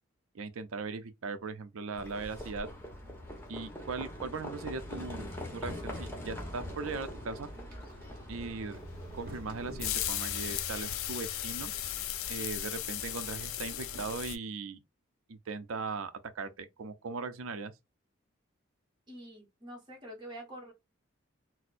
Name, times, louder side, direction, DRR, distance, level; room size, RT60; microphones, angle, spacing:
voice 1, 0.3-2.7 3.5-7.5 8.3-8.8 9.1-11.7 12.3-14.8 15.3-17.7, right 4 dB, 90° right, 0.5 m, -39 dB
Livestock farm animals working animals, 1.9-10.6, left 1 dB, 10° left, 1.0 m, -43 dB
sound 1, 6.4-14.4, right 1 dB, 45° right, 1.0 m, -48 dB
sound 2, 8.7-14.4, left 13 dB, 90° left, 0.4 m, -37 dB
voice 2, 19.1-20.7, right 1 dB, 25° right, 1.4 m, -46 dB
4.2 x 2.1 x 2.5 m
head